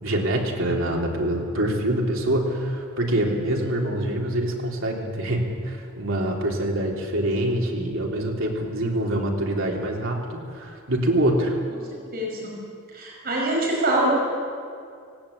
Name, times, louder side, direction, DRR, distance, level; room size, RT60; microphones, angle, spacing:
voice 1, 0.0-11.6, right 1 dB, 70° right, -1 dB, 3.7 m, -25 dB
voice 2, 11.7-12.6 12.9-14.1, right 1 dB, 45° right, -2 dB, 5.4 m, -25 dB
18.5 x 18.0 x 8.7 m, 2.3 s
head